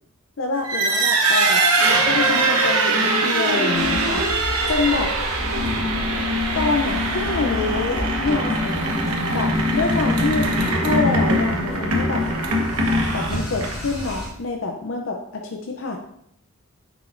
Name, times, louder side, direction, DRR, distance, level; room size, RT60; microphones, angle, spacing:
voice 1, 0.4-5.1 6.5-8.8 9.3-10.5 10.8-12.2 13.1-16.0, left 3 dB, 55° left, 2 dB, 0.6 m, -26 dB
sound 1, 0.6-14.0, right 1 dB, 80° right, 1.1 m, -22 dB
sound 2, 3.7-14.3, equal, ahead, 2.6 m, -32 dB
9.8 x 4.9 x 2.6 m, 0.73 s
head